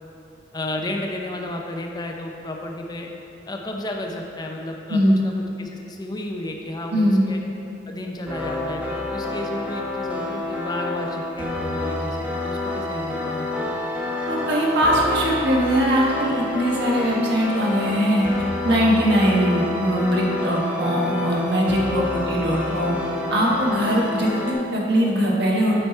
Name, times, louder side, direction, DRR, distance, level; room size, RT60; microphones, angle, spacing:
voice 1, 0.5-3.1 3.5-7.4 7.9-13.8, left 1 dB, 20° left, 1 dB, 0.5 m, -32 dB
voice 2, 4.9-5.2 6.9-7.2 14.3-18.3 18.6-23.0 23.3-25.8, equal, 60° right, -3 dB, 1.3 m, -21 dB
sound 1, 8.3-24.5, left 2 dB, 10° right, 0.8 m, -28 dB
7.8 x 4.7 x 4.2 m, 2.8 s
head